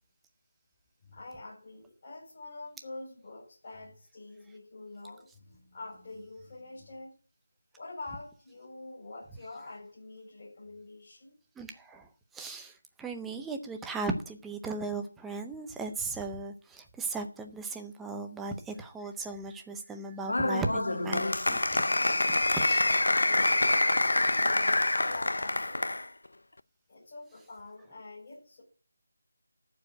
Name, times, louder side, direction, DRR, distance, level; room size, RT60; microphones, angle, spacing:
voice 1, 1.0-7.1 7.7-11.4 23.1-25.9 26.9-28.6, left 2 dB, 30° left, -7 dB, 7.2 m, -46 dB
voice 2, 11.6-21.9 22.5-22.8, right 3 dB, 5° right, 5 dB, 0.6 m, -37 dB
Applause, 20.3-26.1, left 2 dB, 85° left, 0.6 m, -26 dB
13.5 x 4.9 x 8.5 m, 0.41 s
figure-of-eight pair, 175°, 0 cm